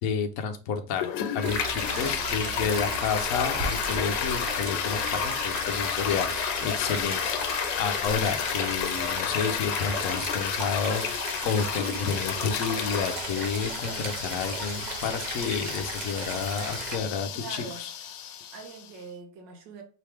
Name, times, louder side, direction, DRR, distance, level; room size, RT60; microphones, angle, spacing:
voice 1, 0.0-17.9, left 6 dB, 65° left, 0.9 m, -30 dB
Toilet flush, 1.0-18.9, left 8 dB, 80° left, 1.2 m, -32 dB
sound 1, 1.4-17.0, right 3 dB, 50° right, 0.5 m, -36 dB
voice 2, 1.8-2.9 17.3-17.9 18.5-19.8, right 4 dB, 85° right, 1.6 m, -43 dB
4.8 x 3.0 x 3.4 m
omnidirectional pair, 1.9 m